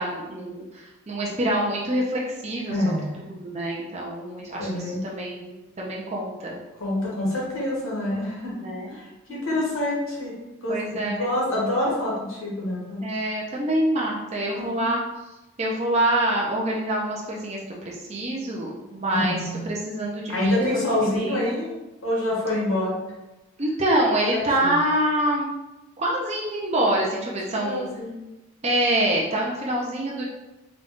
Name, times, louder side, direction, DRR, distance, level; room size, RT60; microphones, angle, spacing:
voice 1, 0.0-6.6 8.6-9.0 9.3-9.7 10.7-11.3 13.0-15.0 15.6-21.5 23.6-25.5 26.0-27.8 28.6-30.2, right 1 dB, 30° right, -3 dB, 0.5 m, -26 dB
voice 2, 2.7-3.2 4.6-5.0 6.8-8.5 8.9-10.3 10.6-10.8 11.0-13.0 14.5-14.9 19.1-19.7 20.3-21.7 22.0-22.9 24.6-24.7 27.5-28.1, left 1 dB, 75° left, -4 dB, 1.3 m, -26 dB
3.9 x 2.3 x 3.6 m, 1.0 s
head